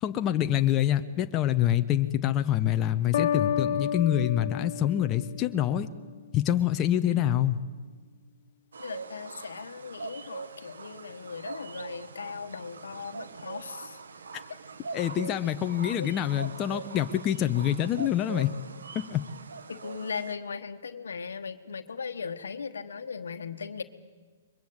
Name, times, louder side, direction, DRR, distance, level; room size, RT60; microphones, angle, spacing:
voice 1, 0.0-5.9 6.3-7.6 14.9-18.5 18.9-19.2, left 11 dB, 25° left, 7 dB, 0.9 m, -26 dB
sound 1, 3.1-6.0, left 9 dB, 60° left, 0.8 m, -30 dB
sound 2, 8.7-20.3, right 4 dB, 85° right, 1.5 m, -42 dB
voice 2, 8.8-14.0 14.5-14.6 14.9-15.0 16.0-16.1 19.7-23.8, left 5 dB, 85° left, 10 dB, 1.3 m, -38 dB
22.0 x 21.5 x 8.0 m, 1.5 s
hypercardioid pair, 135°, 0 cm